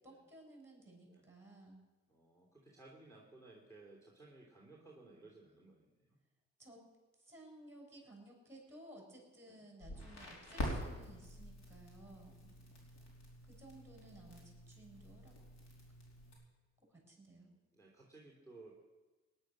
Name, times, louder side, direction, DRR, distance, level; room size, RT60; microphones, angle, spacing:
voice 1, 0.0-1.8 6.6-6.8 7.2-12.3 13.5-15.3 16.9-17.5, right 1 dB, 10° right, -1 dB, 6.7 m, -57 dB
voice 2, 2.1-6.2 9.4-9.6 12.3-13.1 17.7-18.7, right 2 dB, 10° left, -2 dB, 3.2 m, -59 dB
Crackle, 9.8-16.3, left 1 dB, 65° left, 4.5 m, -46 dB
18.5 x 10.5 x 6.5 m, 1.2 s
cardioid pair, 90°, 30 cm